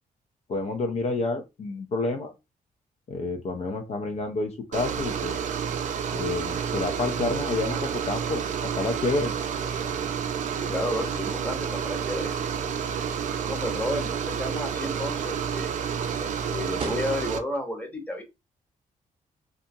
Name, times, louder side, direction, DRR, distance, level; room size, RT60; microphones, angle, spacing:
voice 1, 0.5-2.3 3.1-5.3 6.1-8.4 8.8-9.3, left 3 dB, 45° left, 5 dB, 0.4 m, -29 dB
sound 1, 4.7-17.4, right 7 dB, 60° right, 0.4 m, -30 dB
voice 2, 10.5-12.3 13.4-15.8 16.2-18.2, left 1 dB, 10° left, 2 dB, 0.8 m, -32 dB
sound 2, 17.5-17.6, right 3 dB, 35° right, 0.8 m, -46 dB
2.7 x 2.4 x 2.5 m, 0.24 s
cardioid pair, 120°, 15 cm